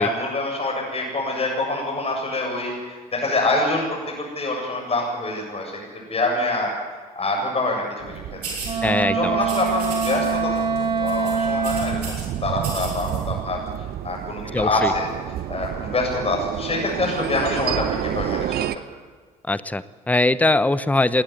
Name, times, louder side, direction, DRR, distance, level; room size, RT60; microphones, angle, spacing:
voice 1, 0.0-6.7 7.1-8.2 8.5-8.8 9.1-13.6 14.0-15.1 15.5-18.5, left 2 dB, 30° left, -1 dB, 7.8 m, -25 dB
sound 1, 8.0-18.8, right 11 dB, 55° right, 1.0 m, -31 dB
sound 2, 8.4-8.8 9.4-10.3 10.6-10.8 11.1-12.2 12.6-13.2, right 4 dB, 85° right, 5.0 m, -34 dB
Wind instrument woodwind instrument, 8.6-12.1, right 5 dB, 25° right, 5.1 m, -24 dB
voice 2, 8.8-9.4 14.5-14.9 19.5-21.2, left 2 dB, 10° left, 16 dB, 0.9 m, -21 dB
20.0 x 19.0 x 9.6 m, 1.5 s
figure-of-eight pair, 50°, 20 cm